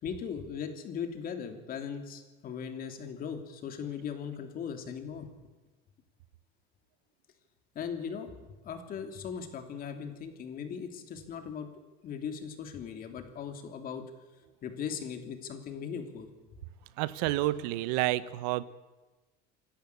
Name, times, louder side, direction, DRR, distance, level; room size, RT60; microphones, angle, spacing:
voice 1, 0.0-5.3 7.7-8.3 8.6-11.7 12.0-14.0 14.6-16.3, left 7 dB, 45° left, 6 dB, 3.1 m, -38 dB
voice 2, 17.0-18.6, right 16 dB, 90° right, 17 dB, 1.0 m, -29 dB
27.0 x 11.5 x 8.4 m, 1.2 s
cardioid pair, 120°, 20 cm